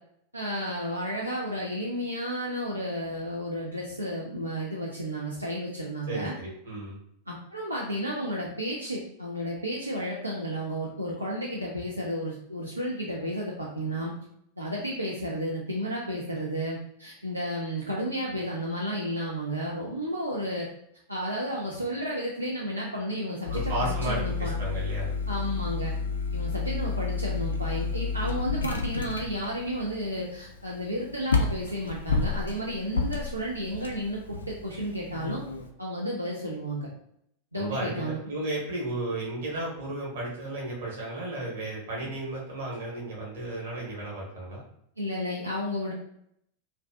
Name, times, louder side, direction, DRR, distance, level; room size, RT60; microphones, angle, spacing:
voice 1, 0.3-6.3 7.3-14.1 14.6-20.7 21.1-24.7 25.3-25.9 26.3-35.4 35.8-36.9 37.5-38.2 45.0-45.9, equal, 85° right, -4 dB, 0.4 m, -32 dB
voice 2, 6.1-7.0 23.5-25.1 37.5-44.6, right 1 dB, 55° right, -4 dB, 1.0 m, -34 dB
sound 1, 23.5-35.7, left 4 dB, 70° left, 0.3 m, -31 dB
2.4 x 2.2 x 2.3 m, 0.73 s
figure-of-eight pair, 90°, 0 cm